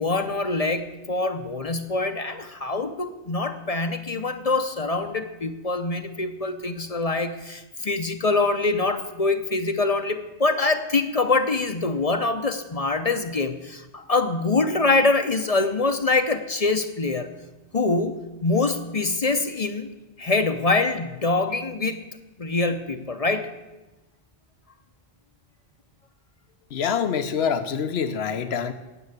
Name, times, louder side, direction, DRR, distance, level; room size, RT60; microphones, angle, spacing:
voice 1, 0.0-17.3 17.7-19.9 20.2-22.0 22.4-23.5, left 3 dB, 40° left, 9 dB, 0.7 m, -24 dB
voice 2, 26.7-28.7, left 7 dB, 80° left, 10 dB, 1.1 m, -25 dB
9.9 x 8.7 x 8.1 m, 1.1 s
omnidirectional pair, 1.0 m